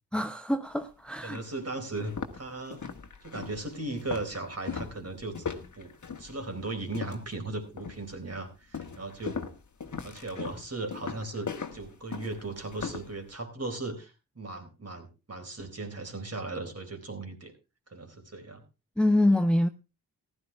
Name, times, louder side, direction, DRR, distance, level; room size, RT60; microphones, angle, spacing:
voice 1, 0.1-1.4 19.0-19.7, left 1 dB, 5° left, 0.7 m, -25 dB
sound 1, 0.8-0.9 1.3-1.5 1.9-7.4 7.8-8.2 8.7-13.1, left 5 dB, 45° left, 1.6 m, -38 dB
voice 2, 1.2-2.8 3.2-5.4 5.7-5.9 6.2-9.4 10.0-17.5 17.9-18.6, right 2 dB, 40° right, 4.0 m, -37 dB
15.0 x 12.0 x 3.4 m
cardioid pair, 60°, 40 cm